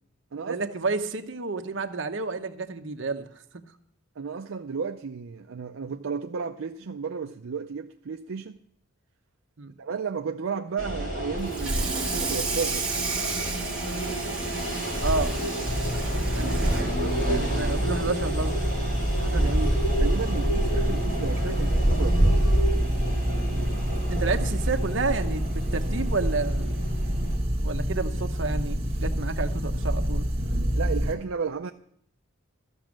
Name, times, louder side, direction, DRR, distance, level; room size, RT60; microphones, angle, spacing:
voice 1, 0.5-3.3 9.6-9.7 15.0-15.4 16.3-18.6 19.2-19.8 23.5-23.6 24.1-26.7 27.6-30.2, right 3 dB, 65° right, 0.9 m, -30 dB
voice 2, 4.2-8.6 9.8-12.9 16.4-16.5 20.0-22.4 30.8-31.7, right 5 dB, 80° right, 0.5 m, -33 dB
sound 1, 10.8-27.4, right 1 dB, 45° left, 4.1 m, -28 dB
Water tap faucet / Sink (filling or washing), 11.4-18.1 18.5-18.7 19.1-19.2 19.6-19.7 20.8-20.9 21.4-21.6, right 4 dB, 5° right, 1.7 m, -34 dB
sound 2, 15.6-31.1, equal, 30° right, 1.7 m, -28 dB
13.5 x 6.1 x 7.5 m
head